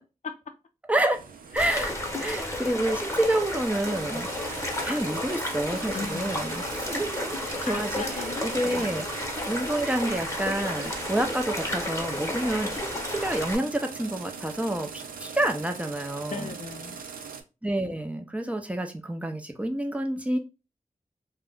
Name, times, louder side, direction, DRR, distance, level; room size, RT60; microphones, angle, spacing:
voice 1, 0.9-1.2 1.5-7.4 7.6-8.0 8.4-9.1 9.5-16.5 17.6-20.4, right 1 dB, 10° right, 0.6 m, -28 dB
sound 1, 1.1-17.4, right 6 dB, 85° right, 0.4 m, -41 dB
sound 2, 1.6-13.6, left 1 dB, 20° left, 1.0 m, -32 dB
voice 2, 5.9-6.4 7.7-9.0 16.3-17.0, left 4 dB, 60° left, 0.4 m, -37 dB
2.4 x 2.2 x 3.6 m
cardioid pair, 40°, 14 cm